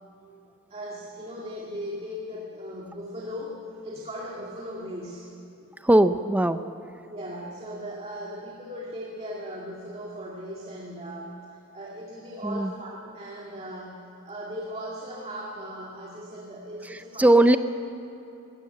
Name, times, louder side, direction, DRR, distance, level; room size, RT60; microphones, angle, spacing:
voice 1, 0.7-5.3 7.0-14.0 14.3-17.6, equal, 30° right, -3 dB, 2.2 m, -38 dB
voice 2, 5.8-6.6 12.4-12.7 16.8-17.6, right 1 dB, 5° right, 10 dB, 0.4 m, -19 dB
21.0 x 17.0 x 7.9 m, 2.9 s
head